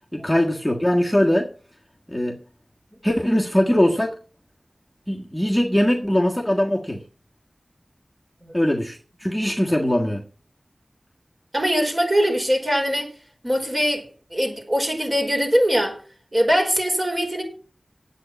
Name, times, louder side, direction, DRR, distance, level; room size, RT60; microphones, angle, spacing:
voice 1, 0.1-1.5 2.1-2.4 3.0-4.2 5.1-7.0 8.5-10.2, left 1 dB, 5° left, 1.6 m, -21 dB
voice 2, 11.5-13.1 13.4-14.0 14.3-16.0 16.3-17.4, equal, 35° right, 5.0 m, -22 dB
9.8 x 8.3 x 7.2 m
wide cardioid pair, 70°, 0 cm